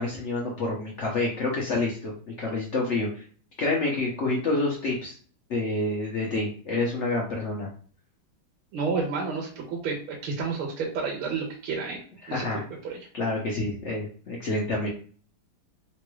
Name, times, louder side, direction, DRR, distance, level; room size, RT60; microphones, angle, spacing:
voice 1, 0.0-3.2 3.6-5.2 5.5-7.7 12.2-12.6 13.1-14.9, left 2 dB, 75° left, -3 dB, 0.6 m, -28 dB
voice 2, 8.7-12.0 12.3-12.5 12.8-13.0, right 4 dB, 80° right, -1 dB, 1.6 m, -30 dB
3.8 x 3.0 x 2.2 m, 0.43 s
omnidirectional pair, 2.4 m